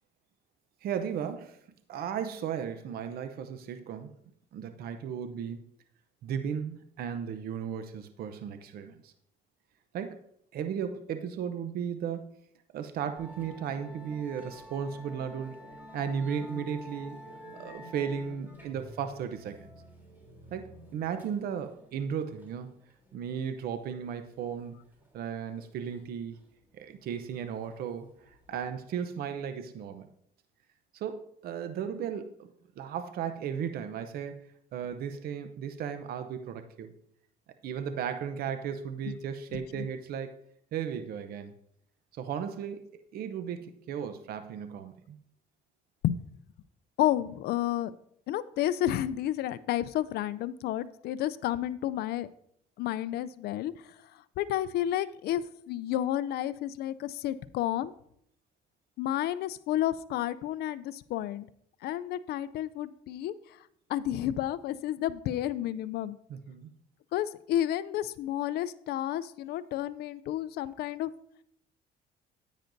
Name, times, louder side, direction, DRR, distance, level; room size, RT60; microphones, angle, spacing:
voice 1, 0.8-1.6 1.9-4.1 4.5-5.6 6.2-9.1 9.9-10.2 10.5-12.3 12.7-15.6 15.9-17.2 17.5-19.7 20.5-22.8 23.1-24.8 25.1-26.4 26.7-30.1 30.9-32.5 32.8-34.4 34.7-36.9 37.6-40.4 40.7-41.5 42.1-45.2 66.3-66.7, right 7 dB, 65° right, 9 dB, 0.7 m, -35 dB
Musical instrument, 13.2-28.7, equal, 10° right, 3.3 m, -50 dB
voice 2, 39.5-39.9 46.0-46.2 47.0-47.9 48.3-52.3 52.8-53.7 54.4-57.9 59.0-61.5 61.8-63.6 63.9-66.2 67.1-71.1, left 12 dB, 75° left, 16 dB, 0.4 m, -31 dB
10.0 x 9.1 x 2.6 m, 0.70 s
cardioid pair, 110°, 17 cm